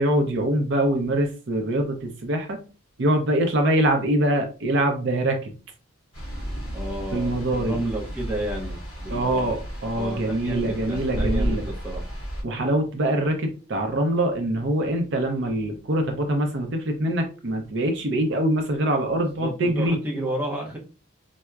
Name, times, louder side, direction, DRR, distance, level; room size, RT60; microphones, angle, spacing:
voice 1, 0.0-2.6 3.0-5.5 7.1-7.8 9.1-11.6 12.4-20.0, right 1 dB, 55° right, 4 dB, 0.5 m, -24 dB
sound 1, 6.1-12.4, equal, 25° left, 1.5 m, -32 dB
voice 2, 6.7-9.6 9.9-12.0 19.2-20.8, right 1 dB, 10° right, -2 dB, 0.6 m, -32 dB
4.3 x 2.0 x 2.3 m, 0.34 s
head